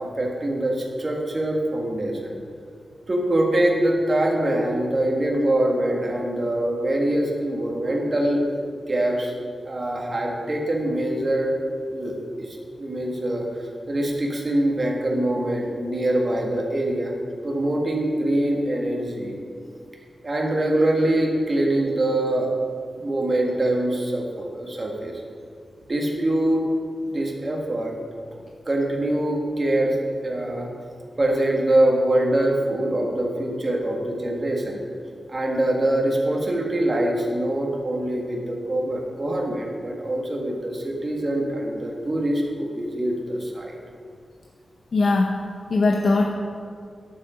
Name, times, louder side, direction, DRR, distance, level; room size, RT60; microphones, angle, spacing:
voice 1, 0.0-2.3 3.1-8.4 8.9-9.3 9.6-11.5 11.9-13.5 13.9-17.1 17.4-19.3 20.2-22.5 23.0-25.1 25.9-26.6 27.1-27.9 28.6-30.0 30.2-30.7 31.2-34.8 35.3-43.8, right 1 dB, 30° right, -1 dB, 1.5 m, -24 dB
voice 2, 44.9-45.4 45.7-46.3, left 3 dB, 60° left, 2 dB, 0.6 m, -20 dB
11.0 x 7.3 x 4.9 m, 2.2 s
wide cardioid pair, 165°, 0 cm